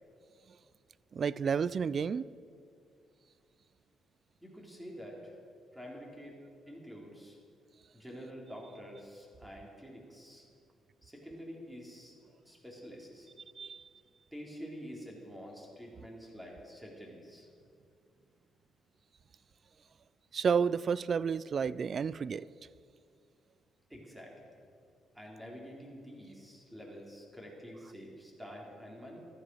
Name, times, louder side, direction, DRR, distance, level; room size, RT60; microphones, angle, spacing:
voice 1, 1.1-2.3 13.6-13.9 20.3-22.5, right 6 dB, 45° right, 0.4 m, -31 dB
voice 2, 4.4-5.4 5.7-6.4 6.7-7.4 7.9-10.5 11.0-12.2 12.4-13.3 14.3-17.5 23.9-24.5 25.1-29.3, equal, 5° right, 3.9 m, -48 dB
14.0 x 12.5 x 6.4 m
cardioid pair, 90°, 0 cm